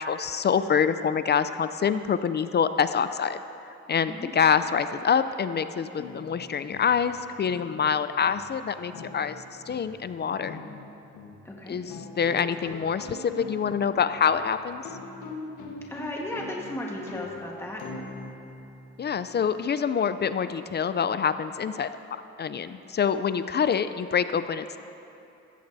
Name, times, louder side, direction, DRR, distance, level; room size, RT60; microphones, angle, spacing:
voice 1, 0.0-3.4 3.9-10.6 11.7-14.8 19.0-24.8, left 7 dB, 35° left, 12 dB, 0.4 m, -26 dB
sound 1, 6.0-19.6, left 3 dB, 85° left, 1.4 m, -43 dB
voice 2, 11.4-11.7 15.9-17.8, left 1 dB, 10° left, -2 dB, 1.4 m, -35 dB
15.0 x 14.0 x 2.7 m, 2.8 s
cardioid pair, 90°, 30 cm